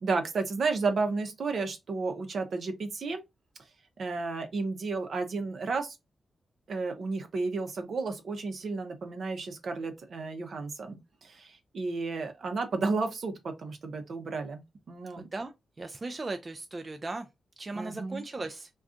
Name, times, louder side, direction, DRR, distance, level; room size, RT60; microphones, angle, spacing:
voice 1, 0.0-3.2 4.0-6.0 6.7-14.6 14.9-15.3 17.7-18.2, right 3 dB, 65° right, 0.6 m, -32 dB
voice 2, 15.8-17.3 17.6-18.7, right 2 dB, 35° right, 0.3 m, -37 dB
2.5 x 2.3 x 3.6 m
cardioid pair, 85°, 0 cm